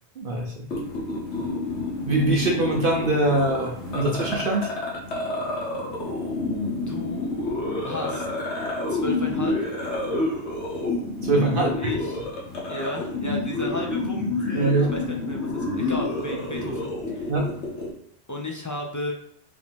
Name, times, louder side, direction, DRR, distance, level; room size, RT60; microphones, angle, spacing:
voice 1, 0.2-0.7 2.1-4.7 11.2-11.7 14.5-14.9 17.3-17.5, right 2 dB, 55° right, -1 dB, 0.9 m, -23 dB
sound 1, 0.7-17.9, left 2 dB, 85° left, 1.4 m, -29 dB
voice 2, 6.9-7.3 7.8-8.3 8.9-9.6 11.5-12.2 12.7-17.3 18.3-19.1, left 2 dB, 20° left, 0 dB, 0.6 m, -33 dB
5.0 x 2.8 x 3.5 m, 0.70 s
omnidirectional pair, 1.1 m